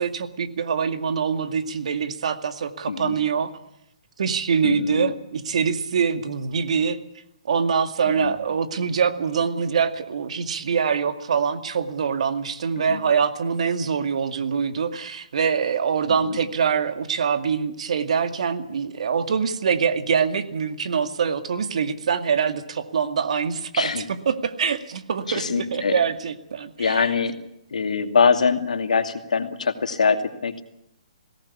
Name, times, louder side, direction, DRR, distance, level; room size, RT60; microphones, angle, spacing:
voice 1, 0.0-3.5 4.2-7.0 7.5-27.0, right 6 dB, 65° right, 8 dB, 2.2 m, -24 dB
voice 2, 4.6-5.1 8.1-8.4 12.8-13.0 16.1-16.4 23.7-24.1 25.3-26.0 26.8-27.4 27.7-30.6, left 5 dB, 80° left, 7 dB, 2.4 m, -23 dB
20.5 x 17.5 x 8.5 m, 0.81 s
hypercardioid pair, 145°, 4 cm